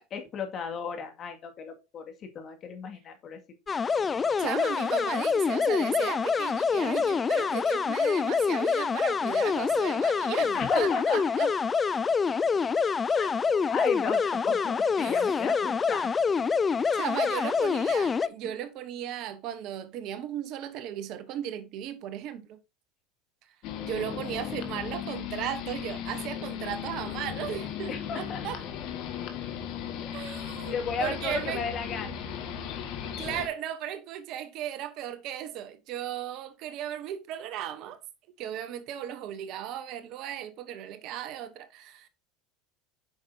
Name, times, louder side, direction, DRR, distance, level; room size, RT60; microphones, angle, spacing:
voice 1, 0.1-3.4 10.5-11.2 13.1-13.3 13.7-16.1 27.9-28.4 30.0-30.1 30.7-32.1, left 6 dB, 40° left, 2.2 m, -34 dB
sound 1, 3.7-18.3, left 5 dB, 25° left, 0.5 m, -26 dB
voice 2, 4.4-11.5 15.0-15.2 16.9-22.6 23.5-23.6 23.8-28.6 30.1-31.6 33.2-38.0 38.4-42.1, right 10 dB, 55° right, 1.0 m, -36 dB
sound 2, 23.6-33.5, left 9 dB, 60° left, 1.8 m, -36 dB
8.8 x 5.9 x 2.8 m
hypercardioid pair, 85°, 0 cm